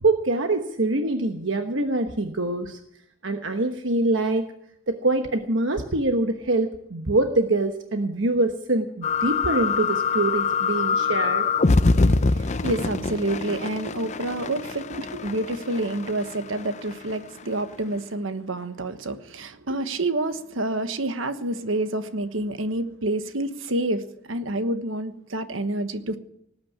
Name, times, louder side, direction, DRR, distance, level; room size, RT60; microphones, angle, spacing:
voice 1, 0.0-2.8 3.2-4.5 4.9-11.5 14.1-14.2 14.9-15.2, right 2 dB, 70° right, 6 dB, 1.2 m, -24 dB
sound 1, 9.0-17.4, left 4 dB, 35° left, 0.6 m, -25 dB
voice 2, 12.3-14.9 15.2-26.2, right 1 dB, 85° right, 10 dB, 1.3 m, -28 dB
19.0 x 8.7 x 8.6 m, 0.74 s
head